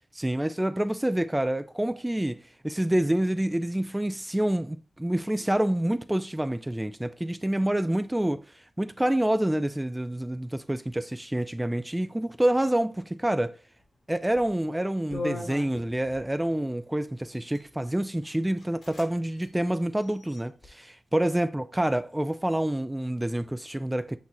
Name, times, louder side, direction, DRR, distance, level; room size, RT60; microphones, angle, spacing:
voice 1, 0.1-8.4 8.8-13.6 14.1-24.2, right 1 dB, 10° right, 0.3 m, -27 dB
sound 1, 14.3-14.5 15.1-16.2 17.2-17.7 18.2-18.3 18.6-19.1 19.3-19.5 20.0-20.7, left 2 dB, 55° left, 2.7 m, -38 dB
8.5 x 4.0 x 2.9 m
wide cardioid pair, 160°, 0 cm